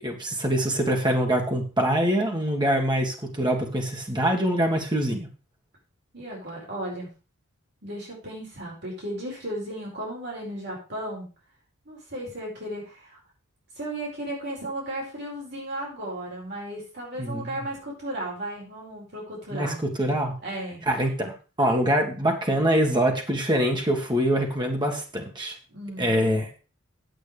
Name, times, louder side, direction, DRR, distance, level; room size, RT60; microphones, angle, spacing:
voice 1, 0.0-5.3 17.2-17.6 19.5-20.3 20.9-25.6 26.0-26.5, right 1 dB, 20° right, 2 dB, 1.9 m, -24 dB
voice 2, 6.1-7.1 7.8-11.3 11.8-13.2 13.8-19.8 20.4-20.8 25.7-26.1, right 1 dB, 50° right, -3 dB, 4.7 m, -35 dB
9.3 x 7.8 x 5.0 m, 0.33 s
head